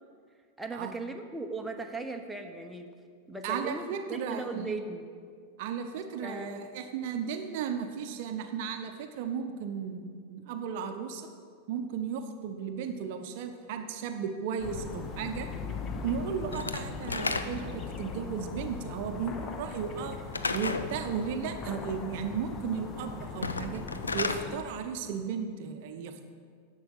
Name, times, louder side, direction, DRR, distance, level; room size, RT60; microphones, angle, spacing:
voice 1, 0.6-2.9 3.3-5.0 6.2-6.6, right 2 dB, 5° right, 3 dB, 0.8 m, -37 dB
voice 2, 3.4-4.9 5.6-11.3 11.7-15.5 16.0-20.2 20.5-23.8 24.1-26.3, right 7 dB, 50° right, 7 dB, 0.7 m, -35 dB
sound 1, 14.6-24.6, left 5 dB, 30° left, 0.9 m, -39 dB
Slam / Wood, 16.5-17.8 20.3-20.9 23.3-24.5, left 3 dB, 75° left, 0.5 m, -32 dB
11.0 x 7.1 x 5.7 m, 2.1 s
figure-of-eight pair, 90°, 0 cm